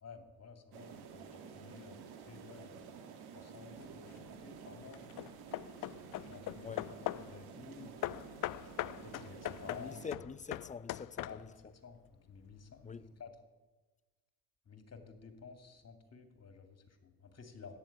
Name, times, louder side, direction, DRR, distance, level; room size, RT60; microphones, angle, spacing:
voice 1, 0.0-2.9 3.3-5.0 6.1-7.9 9.0-10.2 11.2-11.5 11.8-13.3 14.7-17.8, left 5 dB, 40° left, 2.7 m, -53 dB
sound 1, 0.7-10.1, right 6 dB, 75° right, 1.9 m, -51 dB
Hammer / Wood, 3.8-4.3 4.9-7.4 8.0-11.7, left 16 dB, 60° left, 0.5 m, -41 dB
voice 2, 9.7-11.5 12.8-13.0, left 5 dB, 20° left, 0.7 m, -45 dB
13.5 x 9.8 x 8.8 m
hypercardioid pair, 55°, 38 cm